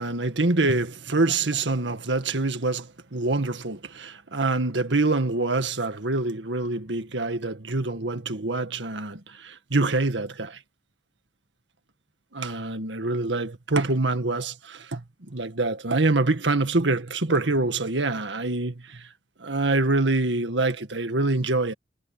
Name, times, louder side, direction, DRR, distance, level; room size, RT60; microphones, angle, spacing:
voice 1, 0.0-10.6 12.3-19.1 19.4-21.7, right 2 dB, 90° right, 1.8 m, -25 dB
head